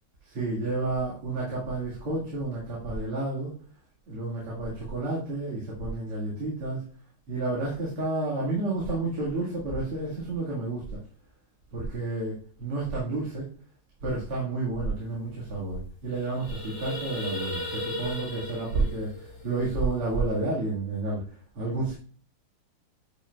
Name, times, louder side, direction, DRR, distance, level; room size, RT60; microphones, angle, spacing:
voice 1, 0.2-3.5 4.1-6.8 7.3-11.0 11.7-13.5 14.0-21.2 21.5-21.9, right 2 dB, 85° right, -6 dB, 2.8 m, -30 dB
sound 1, 15.1-15.2 15.4-15.6 16.0-20.3, left 1 dB, 55° left, 3.4 m, -37 dB
10.0 x 5.2 x 2.3 m, 0.43 s
omnidirectional pair, 2.4 m